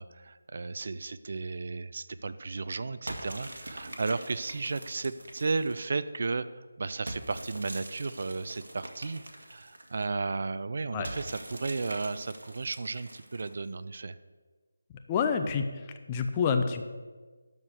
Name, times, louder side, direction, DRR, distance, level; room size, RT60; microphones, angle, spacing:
voice 1, 0.0-6.5 6.8-9.2 9.5-14.2, right 3 dB, 50° right, 14 dB, 0.4 m, -34 dB
sound 1, 3.1-6.0 7.1-10.0 11.0-13.7, right 1 dB, 70° right, 1.8 m, -43 dB
voice 2, 15.1-15.6 16.1-16.9, left 6 dB, 20° left, 6 dB, 0.6 m, -27 dB
12.5 x 4.6 x 8.2 m, 1.4 s
figure-of-eight pair, 165°, 0 cm